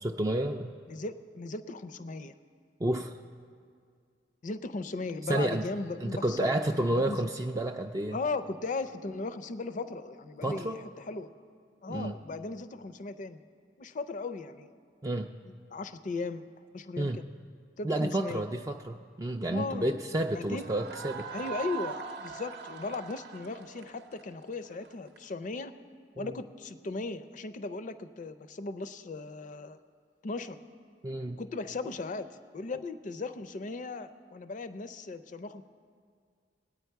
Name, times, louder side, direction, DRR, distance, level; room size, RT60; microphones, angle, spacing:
voice 1, 0.0-0.7 2.8-3.2 5.3-5.7 6.0-8.2 10.4-10.8 11.9-12.1 15.0-15.3 17.0-17.2 17.8-21.3 26.2-26.4 31.0-31.4, right 1 dB, 20° right, 3 dB, 0.3 m, -30 dB
voice 2, 0.9-2.3 4.4-7.3 8.1-11.3 11.8-13.4 13.8-14.7 15.2-16.4 16.7-17.3 17.8-18.4 19.5-19.9 20.3-20.7 21.3-25.7 26.2-29.8 30.2-30.6 31.4-32.3 32.5-35.6, left 3 dB, 45° left, 13 dB, 0.5 m, -37 dB
sound 1, 20.5-25.2, right 6 dB, 65° right, 0.7 m, -41 dB
19.5 x 9.3 x 4.6 m, 2.1 s
head